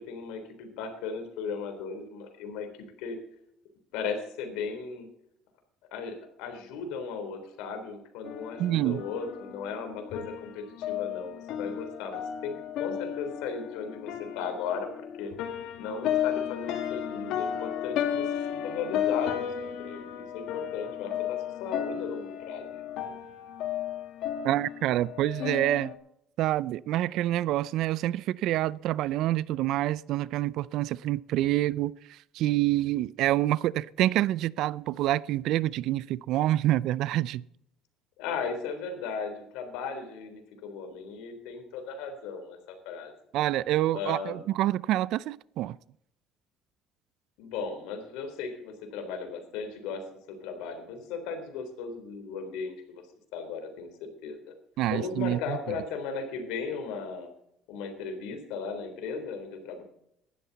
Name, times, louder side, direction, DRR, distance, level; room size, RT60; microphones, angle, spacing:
voice 1, 0.0-2.7 3.0-3.2 3.9-5.1 5.9-15.3 15.8-22.8 38.2-43.1 43.9-44.4 47.4-53.0 53.3-53.9 54.2-54.5 54.9-57.3 57.7-59.8, left 5 dB, 85° left, 3.5 m, -36 dB
sound 1, 8.2-26.0, left 10 dB, 70° left, 2.2 m, -34 dB
voice 2, 8.6-9.0 24.4-25.9 26.4-37.4 43.3-45.8 54.8-55.6, right 14 dB, 65° right, 0.4 m, -27 dB
17.0 x 12.5 x 4.1 m
cardioid pair, 130°, 0 cm